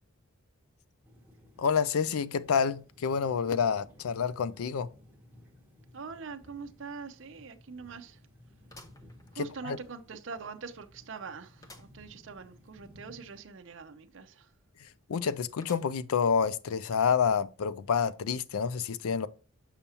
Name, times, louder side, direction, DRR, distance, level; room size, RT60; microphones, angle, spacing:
sound 1, 1.0-13.4, left 1 dB, 10° right, 1.1 m, -57 dB
voice 1, 1.6-4.9 9.4-9.8 15.1-19.3, left 6 dB, 80° left, 0.4 m, -28 dB
voice 2, 5.9-8.2 9.4-14.5, right 5 dB, 55° right, 0.5 m, -43 dB
sound 2, 6.5-6.6 7.0-7.1 8.7-9.8 10.3-10.4 11.6-12.0 12.4-12.5 12.7-12.8 15.6-16.2 16.8-16.9 17.9-18.0, left 2 dB, 15° left, 0.6 m, -54 dB
6.8 x 5.6 x 2.8 m
head